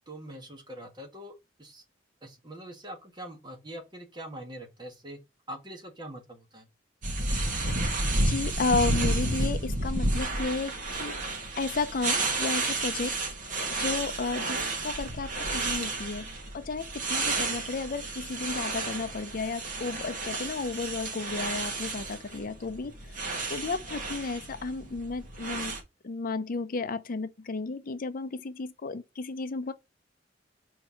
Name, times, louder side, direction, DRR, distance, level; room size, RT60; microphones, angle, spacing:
voice 1, 0.1-1.8 2.2-5.2 5.5-6.7 17.2-17.5, right 1 dB, 25° right, 1.6 m, -43 dB
sound 1, 7.0-25.8, right 2 dB, 45° right, 1.8 m, -31 dB
voice 2, 8.3-10.7 11.0-11.2 11.6-13.2 13.4-13.5 13.8-16.3 16.5-22.9 23.5-25.7 26.0-29.7, left 4 dB, 50° left, 0.5 m, -33 dB
4.6 x 4.5 x 5.6 m
head